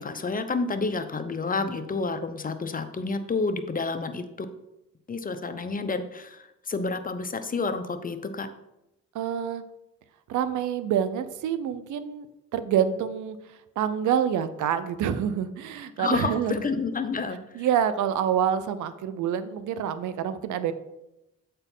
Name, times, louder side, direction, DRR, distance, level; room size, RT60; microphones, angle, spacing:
voice 1, 0.0-4.5 5.1-8.5 16.0-17.7, left 4 dB, 30° left, 9 dB, 0.8 m, -29 dB
voice 2, 9.1-9.6 10.3-12.3 12.5-13.4 13.8-16.5 17.5-20.7, right 9 dB, 75° right, 13 dB, 0.7 m, -27 dB
8.1 x 4.4 x 5.4 m, 0.91 s
cardioid pair, 90°, 30 cm